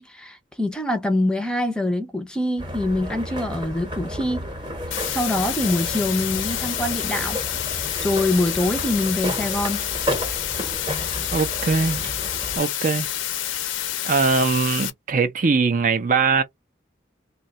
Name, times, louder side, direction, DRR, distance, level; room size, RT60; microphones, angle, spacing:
voice 1, 0.0-4.5 5.1-7.4 8.0-9.9, left 1 dB, 5° left, 0.5 m, -24 dB
sound 1, 2.6-12.6, equal, 25° right, 0.9 m, -32 dB
sound 2, 4.9-14.9, left 12 dB, 85° left, 0.6 m, -28 dB
voice 2, 11.3-12.1 12.6-13.1 14.0-16.4, right 4 dB, 45° right, 0.5 m, -21 dB
2.7 x 2.2 x 3.9 m
head